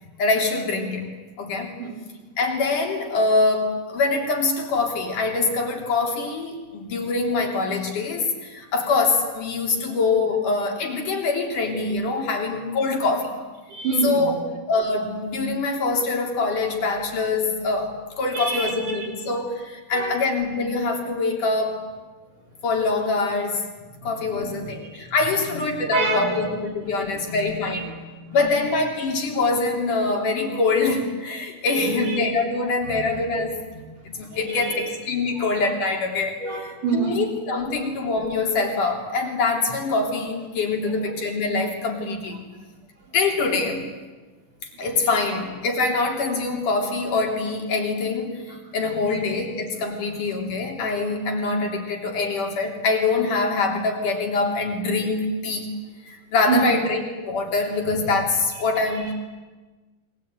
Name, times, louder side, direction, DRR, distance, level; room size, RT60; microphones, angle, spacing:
voice 1, 0.2-1.1 1.4-1.8 2.4-13.4 14.0-14.3 14.7-21.8 22.6-23.6 24.0-27.9 28.3-33.6 34.1-36.4 36.9-42.4 43.1-43.9 44.8-55.7 56.0-59.1, left 3 dB, 60° left, 1 dB, 4.8 m, -24 dB
voice 2, 13.7-14.3 18.3-19.1 19.9-20.2 24.0-25.1 25.5-25.7 25.9-26.4 27.2-28.4 31.7-32.2 32.9-33.0 33.7-33.8 34.1-34.9 36.4-37.2 41.0-41.1 45.1-45.2 49.1-49.2 56.5-56.7 59.0-59.1, right 4 dB, 55° right, 1 dB, 6.1 m, -28 dB
28.0 x 23.0 x 9.3 m, 1.3 s
omnidirectional pair, 4.3 m